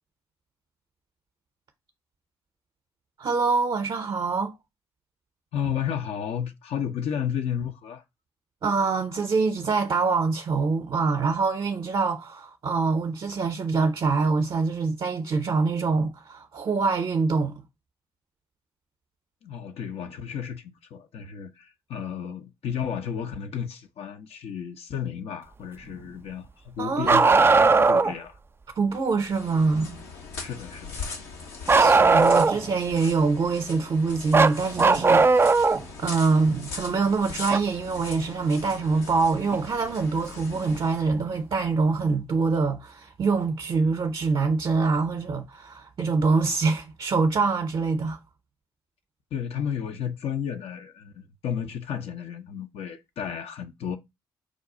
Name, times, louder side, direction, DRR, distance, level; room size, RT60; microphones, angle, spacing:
voice 1, 3.2-4.5 8.6-17.6 26.8-27.3 28.8-30.0 31.8-35.3 36.0-48.2, right 4 dB, 45° right, 0.7 m, -25 dB
voice 2, 5.5-8.0 19.4-28.4 30.4-31.1 49.3-54.0, left 8 dB, 60° left, 0.6 m, -33 dB
Bark, 27.0-28.1 31.7-32.7 34.3-35.8 37.5-37.6 39.5-39.6 40.7-40.8, right 4 dB, 20° right, 0.3 m, -18 dB
sound 1, 29.2-41.1, left 4 dB, 80° left, 1.1 m, -40 dB
5.0 x 2.3 x 3.8 m
hypercardioid pair, 45°, 12 cm